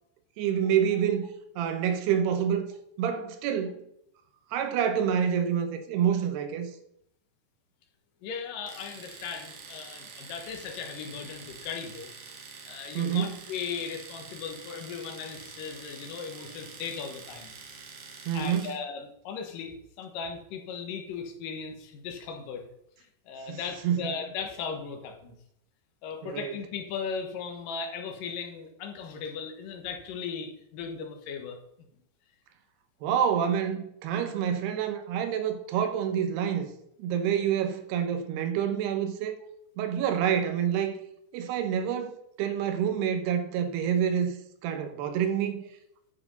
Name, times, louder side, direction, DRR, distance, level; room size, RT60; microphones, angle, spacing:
voice 1, 0.4-1.3 1.6-2.7 3.0-3.8 4.5-6.7 12.9-13.4 18.3-18.7 23.5-23.6 23.8-24.1 26.2-26.5 33.0-36.7 37.0-39.4 39.8-41.0 41.3-44.4 44.6-45.6, right 8 dB, 80° right, 3.1 m, -27 dB
voice 2, 8.2-12.1 12.4-17.5 18.3-22.6 23.3-25.3 26.0-31.6, left 6 dB, 65° left, 2.7 m, -37 dB
Domestic sounds home sounds, 8.7-18.8, right 5 dB, 65° right, 1.4 m, -46 dB
9.6 x 7.0 x 5.4 m
omnidirectional pair, 4.7 m